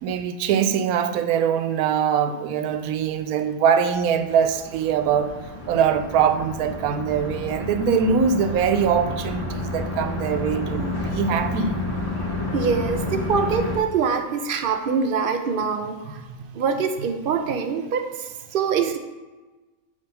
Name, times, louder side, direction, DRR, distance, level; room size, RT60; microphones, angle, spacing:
voice 1, 0.0-5.3 5.7-11.8, right 7 dB, 85° right, 10 dB, 1.1 m, -22 dB
sound 1, 4.0-13.8, left 2 dB, 40° left, 1.3 m, -30 dB
voice 2, 12.5-16.2 16.5-19.0, right 6 dB, 55° right, 6 dB, 0.6 m, -24 dB
8.4 x 3.4 x 5.4 m, 1.2 s
omnidirectional pair, 1.5 m